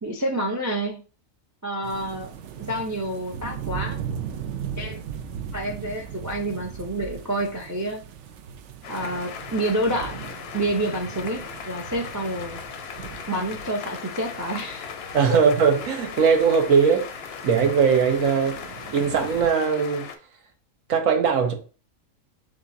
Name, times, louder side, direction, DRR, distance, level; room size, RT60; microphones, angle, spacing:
voice 1, 0.0-1.0 1.6-2.3 2.6-4.0 4.8-5.0 5.5-8.0 8.9-10.2 10.5-12.6 13.3-14.9, right 1 dB, 30° right, 0.3 m, -28 dB
sound 1, 1.8-19.5, right 8 dB, 70° right, 0.9 m, -38 dB
sound 2, 8.8-20.2, left 7 dB, 65° left, 0.7 m, -38 dB
voice 2, 15.1-17.1 17.4-18.6 18.9-20.1 20.9-21.5, right 6 dB, 85° right, 1.2 m, -20 dB
7.1 x 2.5 x 2.6 m
omnidirectional pair, 1.4 m